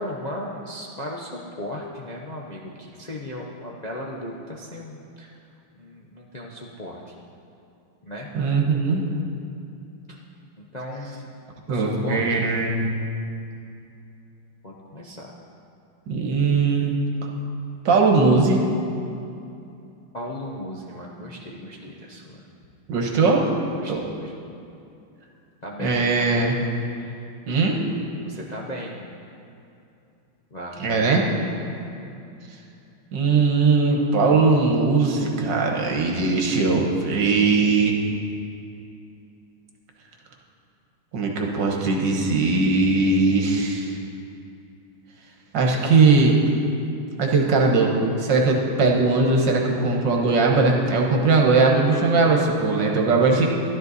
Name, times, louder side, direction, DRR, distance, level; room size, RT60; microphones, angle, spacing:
voice 1, 0.0-5.4 5.7-7.1 8.0-8.3 10.1-10.2 10.6-11.3 11.7-12.5 14.6-15.3 20.1-22.4 23.7-23.9 24.2-24.3 25.6-26.5 27.0-27.1 28.2-29.1 30.5-31.2 31.8-32.2, left 1 dB, 60° left, -3 dB, 0.4 m, -36 dB
voice 2, 8.3-9.1 11.7-12.9 16.1-16.9 17.9-18.6 22.9-23.5 23.9-24.0 25.8-26.6 27.5-27.8 30.8-31.2 33.1-37.9 41.1-43.9 45.5-46.3 47.2-47.9 48.2-53.5, right 3 dB, 65° right, 0 dB, 1.8 m, -20 dB
12.5 x 12.0 x 4.1 m, 2.7 s
omnidirectional pair, 2.2 m